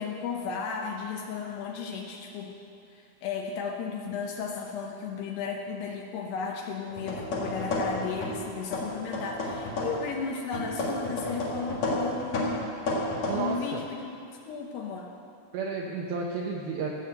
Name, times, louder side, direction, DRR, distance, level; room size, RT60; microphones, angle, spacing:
voice 1, 0.0-2.6 2.9-12.7 13.3-15.1, left 5 dB, 75° left, 1 dB, 2.7 m, -34 dB
sound 1, 6.9-8.4 8.7-10.1 10.5-13.4, left 1 dB, 45° left, 2.6 m, -31 dB
voice 2, 13.2-13.8 15.5-16.9, right 5 dB, 80° right, 0 dB, 2.2 m, -32 dB
16.5 x 7.1 x 7.8 m, 2.6 s
omnidirectional pair, 5.5 m